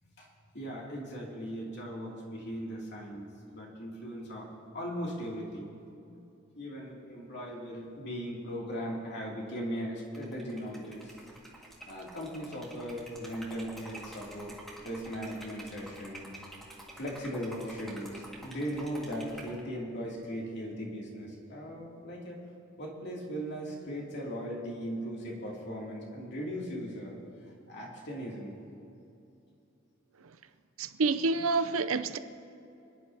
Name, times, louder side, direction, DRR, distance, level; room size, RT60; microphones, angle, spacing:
voice 1, 0.5-5.7 6.5-11.1 11.9-14.6 14.8-16.3 17.0-22.4 22.8-27.2 27.4-28.5, equal, 55° left, 2.7 m, -38 dB
Liquid, 10.1-19.6, right 1 dB, ahead, 1.9 m, -49 dB
voice 2, 30.8-32.2, right 3 dB, 75° right, 0.6 m, -28 dB
26.5 x 11.0 x 2.8 m
head